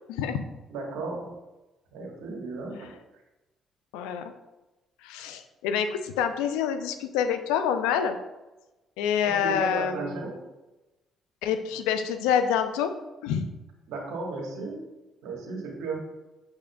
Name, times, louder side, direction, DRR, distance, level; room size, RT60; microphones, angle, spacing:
voice 1, 0.1-0.5 2.7-2.9 3.9-4.3 5.0-8.2 9.0-10.1 11.4-12.9 13.2-13.5, left 8 dB, 90° left, 9 dB, 0.4 m, -27 dB
voice 2, 0.7-1.3 1.9-2.9 9.2-10.4 13.9-14.8 15.2-16.0, right 3 dB, 85° right, -1 dB, 1.2 m, -34 dB
6.1 x 3.5 x 2.2 m, 1.1 s
supercardioid pair, 70°, 0 cm